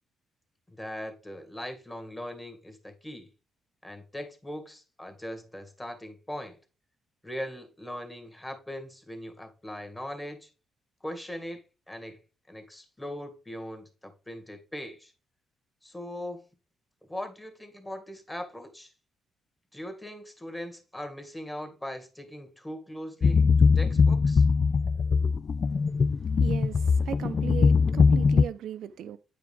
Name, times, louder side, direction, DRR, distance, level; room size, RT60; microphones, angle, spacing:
voice 1, 0.7-3.3 3.8-6.6 7.2-10.5 11.0-12.2 12.5-15.1 15.8-16.5 17.1-18.9 19.7-24.5, left 1 dB, 10° left, 1.9 m, -40 dB
sound 1, 23.2-28.5, left 5 dB, 45° left, 0.3 m, -21 dB
voice 2, 26.4-29.2, right 10 dB, 75° right, 0.7 m, -37 dB
9.1 x 4.9 x 3.5 m
cardioid pair, 90°, 0 cm